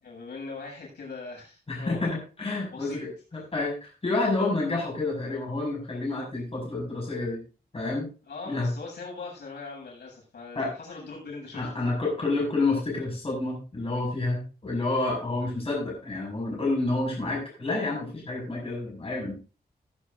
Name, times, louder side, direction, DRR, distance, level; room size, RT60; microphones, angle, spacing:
voice 1, 0.0-2.0 2.7-3.0 3.3-3.4 8.2-11.8, left 4 dB, 85° left, -2 dB, 7.7 m, -41 dB
voice 2, 1.7-7.4 7.7-8.1 8.5-8.7 10.5-10.7 11.5-19.3, left 2 dB, 35° left, -2 dB, 5.9 m, -29 dB
18.5 x 10.0 x 2.6 m, 0.34 s
wide cardioid pair, 115°, 17 cm